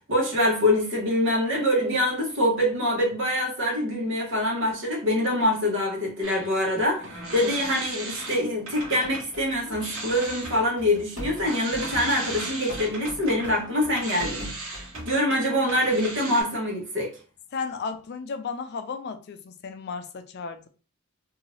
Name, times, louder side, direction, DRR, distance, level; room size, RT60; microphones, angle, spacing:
voice 1, 0.1-14.5 15.0-17.1, left 1 dB, 60° right, 1.2 m, -25 dB
rocking chair grand final, 6.2-9.3 9.6-16.4, right 2 dB, 85° right, 1.2 m, -37 dB
sound 1, 8.8-15.1, equal, 35° right, 1.4 m, -41 dB
voice 2, 17.5-20.7, left 5 dB, 50° left, 0.4 m, -34 dB
2.7 x 2.6 x 3.0 m
head